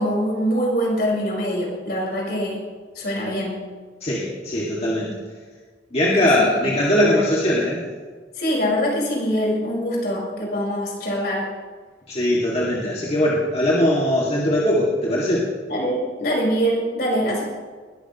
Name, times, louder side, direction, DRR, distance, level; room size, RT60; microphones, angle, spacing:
voice 1, 0.0-2.6 3.0-3.6 6.2-7.3 8.3-11.5 15.7-17.4, equal, 60° left, -3 dB, 5.2 m, -24 dB
voice 2, 4.0-5.2 5.9-7.8 12.1-15.5, left 1 dB, 35° left, -6 dB, 2.2 m, -20 dB
20.5 x 14.0 x 3.1 m, 1.5 s
head